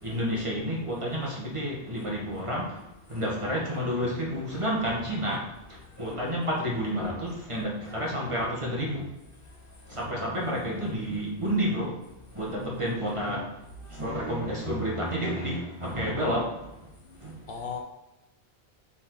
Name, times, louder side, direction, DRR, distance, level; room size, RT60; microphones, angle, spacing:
voice 1, 0.0-2.8 3.1-9.1 9.9-12.0 12.3-13.6 13.9-16.7 17.2-17.4, equal, 25° right, -4 dB, 1.7 m, -30 dB
voice 2, 9.5-10.8 13.8-14.0 17.1-17.2 17.5-17.8, left 5 dB, 55° left, 1 dB, 1.0 m, -40 dB
7.5 x 4.4 x 4.0 m, 0.90 s
omnidirectional pair, 1.2 m